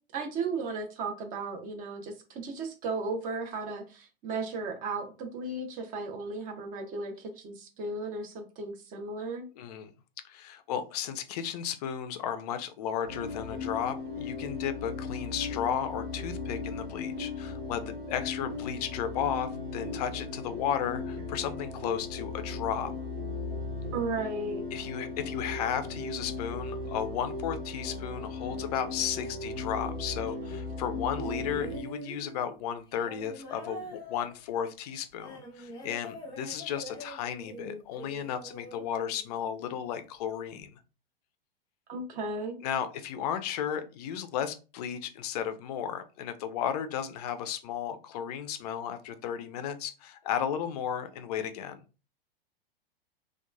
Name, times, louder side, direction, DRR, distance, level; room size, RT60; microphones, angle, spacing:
voice 1, 0.1-9.5 23.9-24.6 41.9-42.6, right 3 dB, 30° right, 5 dB, 0.6 m, -35 dB
voice 2, 9.6-9.9 10.2-22.9 24.7-40.8 42.6-51.8, left 9 dB, 45° left, 10 dB, 0.4 m, -34 dB
sound 1, 13.0-31.8, left 3 dB, 85° right, 1.0 m, -37 dB
sound 2, 31.2-39.6 40.6-40.7, equal, 15° left, 0.8 m, -45 dB
2.9 x 2.1 x 2.3 m, 0.32 s
figure-of-eight pair, 95°, 30 cm